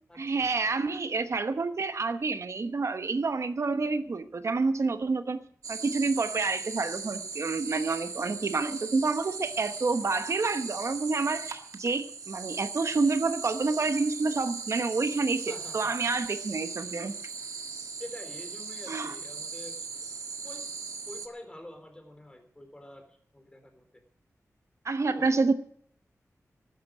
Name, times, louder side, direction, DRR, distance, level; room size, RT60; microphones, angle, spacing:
voice 1, 0.2-5.4 5.7-17.2 18.9-19.1 24.8-25.5, right 3 dB, 55° right, 10 dB, 1.0 m, -28 dB
sound 1, 5.6-21.3, right 4 dB, 85° right, 1.6 m, -39 dB
voice 2, 15.5-15.9 18.0-20.0 20.4-20.7 21.1-23.0 23.3-23.8 25.1-25.3, left 1 dB, 15° left, 5 dB, 3.8 m, -46 dB
12.5 x 10.5 x 7.7 m, 0.63 s
wide cardioid pair, 85°, 6 cm